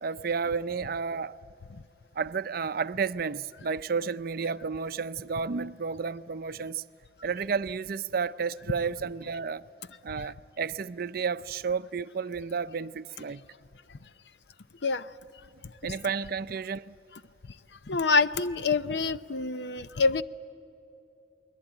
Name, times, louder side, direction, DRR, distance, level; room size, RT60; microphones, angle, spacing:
voice 1, 0.0-1.4 2.2-6.8 7.2-9.6 10.0-13.4 15.8-17.0, right 5 dB, 55° right, 0.5 m, -32 dB
voice 2, 17.9-20.2, left 4 dB, 65° left, 0.7 m, -26 dB
29.0 x 21.0 x 9.0 m
head